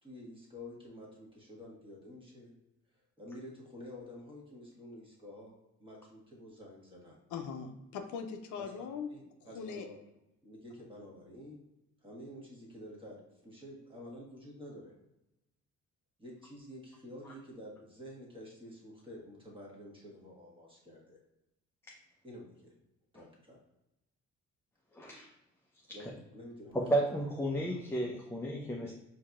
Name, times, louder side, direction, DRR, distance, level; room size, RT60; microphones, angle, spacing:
voice 1, 0.0-2.5 3.2-5.5 5.8-7.2 8.6-8.7 9.1-10.1 10.4-11.6 12.0-14.9 16.2-21.2 22.2-22.7 23.1-23.6 25.9-27.2 27.5-27.7, left 1 dB, 15° right, -3 dB, 1.4 m, -49 dB
voice 2, 7.3-9.1 9.4-9.9, left 6 dB, 75° left, 6 dB, 0.5 m, -40 dB
voice 3, 24.9-25.3 26.7-28.9, right 1 dB, 10° left, -1 dB, 0.5 m, -33 dB
4.5 x 2.8 x 2.4 m, 0.90 s
cardioid pair, 90°, 30 cm